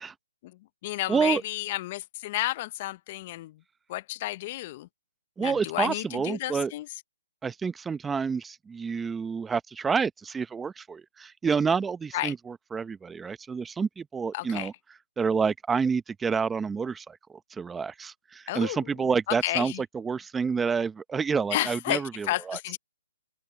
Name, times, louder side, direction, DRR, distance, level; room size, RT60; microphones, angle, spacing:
voice 1, 0.4-3.6 3.9-4.9 5.4-6.9 12.1-12.3 14.3-14.7 18.5-18.9 19.3-19.8 21.5-22.8, left 17 dB, 35° left, 0.7 m, -32 dB
voice 2, 1.1-1.4 5.4-6.7 7.4-14.7 15.2-17.2 17.6-22.6, right 5 dB, 10° right, 0.9 m, -28 dB
open air
hypercardioid pair, 145°, 0 cm